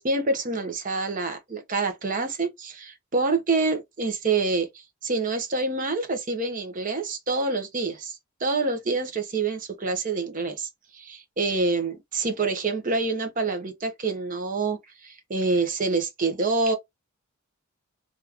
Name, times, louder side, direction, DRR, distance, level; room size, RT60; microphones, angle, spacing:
voice 1, 0.0-16.8, right 3 dB, 35° right, 0.7 m, -27 dB
3.0 x 2.3 x 3.3 m
head